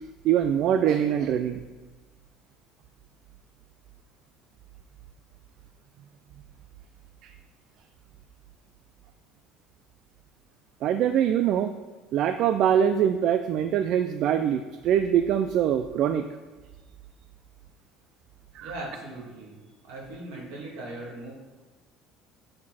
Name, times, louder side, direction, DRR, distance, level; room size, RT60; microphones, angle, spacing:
voice 1, 0.2-1.6 7.2-7.3 10.8-11.7 12.1-16.3 18.5-18.7, right 9 dB, 60° right, 9 dB, 0.3 m, -23 dB
voice 2, 18.6-19.6 19.8-21.3, right 2 dB, 80° right, -4 dB, 2.4 m, -39 dB
7.5 x 4.5 x 4.2 m, 1.3 s
supercardioid pair, 100°, 0 cm